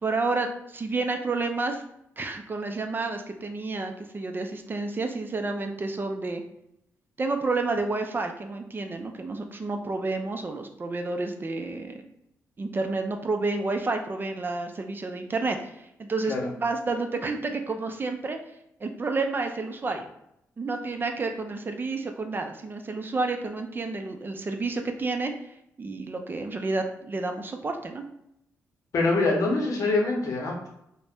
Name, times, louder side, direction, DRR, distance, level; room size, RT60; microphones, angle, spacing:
voice 1, 0.0-1.8 2.2-6.4 7.2-12.0 12.6-18.4 18.8-20.1 20.6-25.3 25.8-28.0, right 3 dB, 35° right, 5 dB, 0.4 m, -30 dB
voice 2, 28.9-30.7, left 3 dB, 70° left, -1 dB, 0.8 m, -24 dB
2.6 x 2.1 x 3.4 m, 0.79 s
cardioid pair, 70°, 6 cm